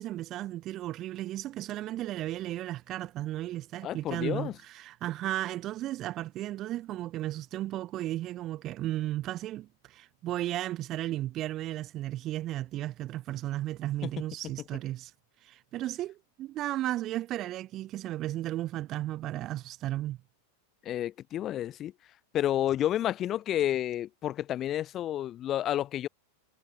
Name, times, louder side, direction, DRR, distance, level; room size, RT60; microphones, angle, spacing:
voice 1, 0.0-15.1 15.4-20.2, right 14 dB, 35° right, 0.3 m, -34 dB
voice 2, 3.8-4.5 14.0-14.1 20.8-21.9 22.3-26.1, left 12 dB, 30° left, 0.7 m, -30 dB
figure-of-eight pair, 90°, 0 cm